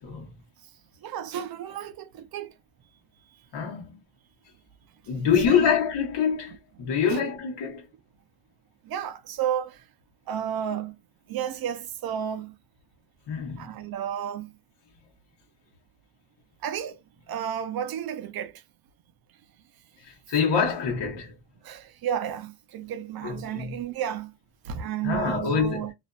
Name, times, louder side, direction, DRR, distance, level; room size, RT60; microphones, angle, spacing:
voice 1, 0.0-0.3 3.5-3.9 5.1-7.9 13.3-13.7 20.0-21.3 23.2-23.8 25.0-25.8, left 7 dB, 60° left, 1.0 m, -26 dB
voice 2, 1.0-2.6 3.3-3.5 5.0-5.8 6.8-7.2 8.8-9.9 10.3-11.0 11.3-12.5 13.6-14.5 16.6-17.0 17.3-18.6 21.6-24.3 24.6-25.9, right 9 dB, 50° right, 0.6 m, -32 dB
2.5 x 2.4 x 2.2 m
cardioid pair, 125°, 48 cm